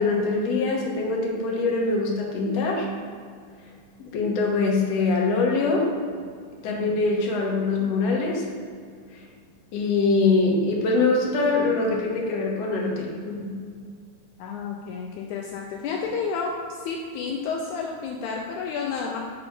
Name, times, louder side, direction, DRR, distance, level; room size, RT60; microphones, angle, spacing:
voice 1, 0.0-2.9 4.0-5.9 6.6-8.5 9.7-13.5, left 3 dB, 65° left, -1 dB, 2.0 m, -23 dB
voice 2, 6.7-7.0 14.4-19.2, left 5 dB, 80° left, 0 dB, 1.9 m, -31 dB
8.3 x 4.2 x 4.8 m, 2.1 s
omnidirectional pair, 3.7 m